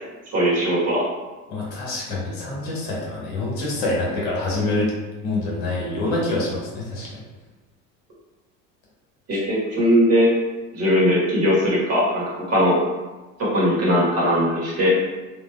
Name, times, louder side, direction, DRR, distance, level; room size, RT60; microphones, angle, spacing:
voice 1, 0.3-1.0 9.3-10.3 10.7-12.8 13.4-14.9, equal, 40° right, -6 dB, 1.2 m, -19 dB
voice 2, 1.5-4.9 5.2-7.1 9.3-9.4, left 2 dB, 70° left, -4 dB, 1.1 m, -26 dB
3.2 x 2.2 x 2.2 m, 1.2 s
hypercardioid pair, 80°, 39 cm